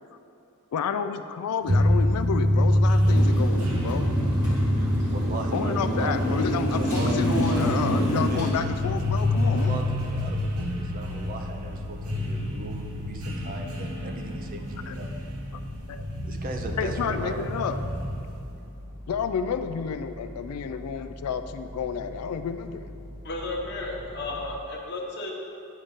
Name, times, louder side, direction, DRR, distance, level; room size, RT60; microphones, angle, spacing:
voice 1, 0.7-4.1 5.5-9.8 14.9-15.0 15.9-16.1 16.8-17.8 19.1-22.8, left 6 dB, 90° left, 9 dB, 0.4 m, -30 dB
sound 1, 1.7-18.5, left 1 dB, 90° right, 1.0 m, -26 dB
Motorcycle, 3.0-8.5, equal, 20° right, 1.4 m, -28 dB
voice 2, 4.8-8.5 9.3-15.1 16.2-17.8, right 1 dB, 40° right, 3 dB, 0.6 m, -38 dB
sound 2, 8.4-24.5, left 1 dB, 55° right, 1.2 m, -43 dB
voice 3, 23.2-25.3, left 2 dB, 50° left, -1 dB, 1.1 m, -33 dB
9.9 x 5.3 x 3.6 m, 2.7 s
head